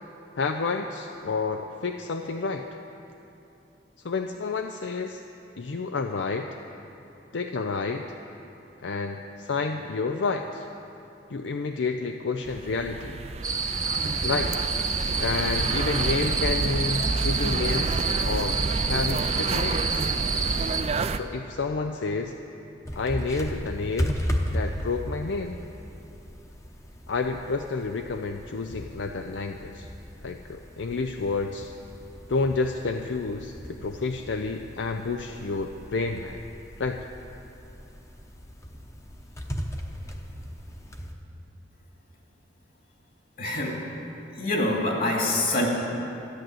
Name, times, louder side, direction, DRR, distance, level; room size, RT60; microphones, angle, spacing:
voice 1, 0.4-2.7 4.0-5.2 5.6-6.5 7.3-8.1 8.8-10.7 11.3-13.2 14.2-14.6 14.9-20.0 21.0-22.4 23.0-24.2 24.5-25.6 27.1-29.9 30.2-31.7 32.3-36.4 36.8-37.1, left 4 dB, 75° left, 5 dB, 0.5 m, -30 dB
sound 1, 12.5-21.2, right 3 dB, 35° right, 0.4 m, -29 dB
sound 2, 13.4-20.8, right 4 dB, 20° right, 0.8 m, -29 dB
sound 3, 22.8-41.1, equal, 15° left, 0.9 m, -36 dB
voice 2, 43.4-43.7 44.3-45.7, left 1 dB, 50° left, -1 dB, 2.5 m, -25 dB
13.5 x 10.0 x 7.7 m, 2.9 s
head